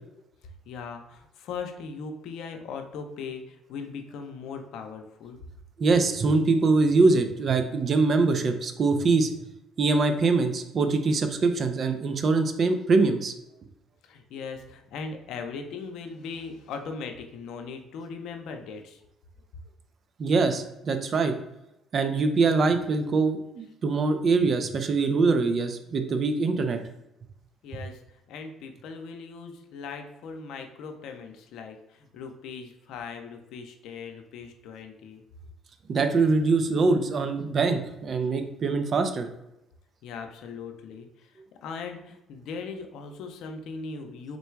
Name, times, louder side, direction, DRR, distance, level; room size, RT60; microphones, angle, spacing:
voice 1, 0.6-5.4 14.0-19.0 27.6-35.2 40.0-44.4, left 5 dB, 75° left, 5 dB, 0.6 m, -39 dB
voice 2, 5.8-9.3 9.8-13.3 20.2-21.3 21.9-26.8 35.9-39.3, right 3 dB, 50° right, 7 dB, 0.5 m, -23 dB
3.9 x 2.3 x 4.5 m, 0.87 s
supercardioid pair, 80°, 0 cm